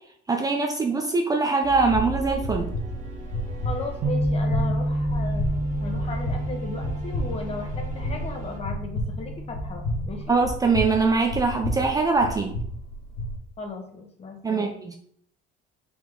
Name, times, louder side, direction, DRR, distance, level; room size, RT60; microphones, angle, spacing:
voice 1, 0.3-2.7 10.3-12.6 14.4-15.0, right 4 dB, 20° right, 4 dB, 0.5 m, -23 dB
sound 1, 1.6-8.6, right 3 dB, 40° right, 1.8 m, -38 dB
sound 2, 1.9-13.3, left 1 dB, 55° left, 2.1 m, -32 dB
voice 2, 3.6-5.5 5.8-10.4 13.6-14.8, left 3 dB, 30° left, 3 dB, 1.3 m, -36 dB
Bass guitar, 4.0-10.3, equal, 70° right, 1.4 m, -30 dB
5.0 x 4.8 x 4.0 m, 0.66 s
cardioid pair, 130°, 21 cm